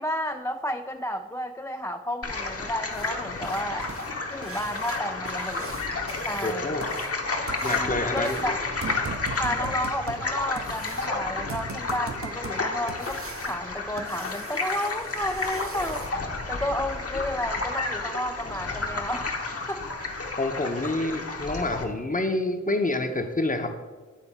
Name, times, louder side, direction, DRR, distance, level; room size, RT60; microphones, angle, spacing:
voice 1, 0.0-3.9 4.3-5.7 6.2-6.7 7.6-8.7 9.4-19.4 19.7-19.8, left 1 dB, 10° left, 5 dB, 0.3 m, -32 dB
sound 1, 2.2-21.8, left 3 dB, 55° left, 1.1 m, -31 dB
sound 2, 2.9-16.1 18.4-18.5 19.0-19.1 19.5-19.6 20.1-20.2 20.6-20.8 21.2-21.3 21.7-21.8, right 4 dB, 50° right, 0.7 m, -40 dB
voice 2, 6.4-6.8 7.6-8.4 20.4-23.8, left 2 dB, 30° left, 7 dB, 0.8 m, -27 dB
9.3 x 3.9 x 5.5 m, 1.4 s
cardioid pair, 50°, 29 cm